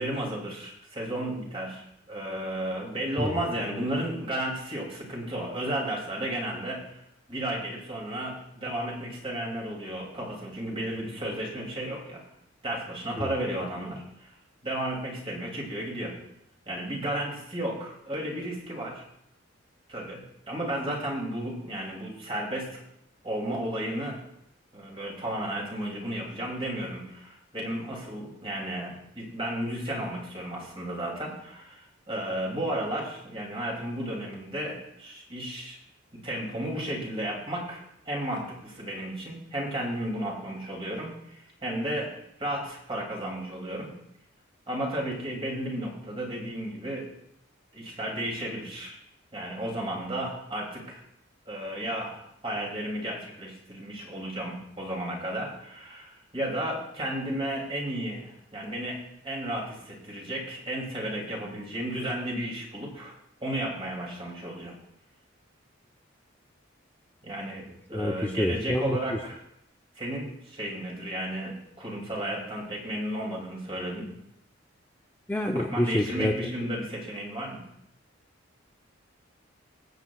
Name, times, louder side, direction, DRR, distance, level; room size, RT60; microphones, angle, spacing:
voice 1, 0.0-6.9 7.3-12.2 12.6-14.3 14.6-16.1 16.7-19.0 19.9-22.8 23.2-24.2 24.7-35.8 36.2-42.1 42.4-43.9 44.7-47.1 47.7-49.0 49.3-51.0 51.5-59.0 59.2-64.8 67.2-69.4 70.0-74.1 75.7-77.6, right 1 dB, 30° right, -2 dB, 2.7 m, -33 dB
voice 2, 67.9-69.0 75.3-76.3, left 1 dB, 10° left, 1 dB, 0.5 m, -27 dB
21.5 x 7.9 x 2.4 m, 0.77 s
head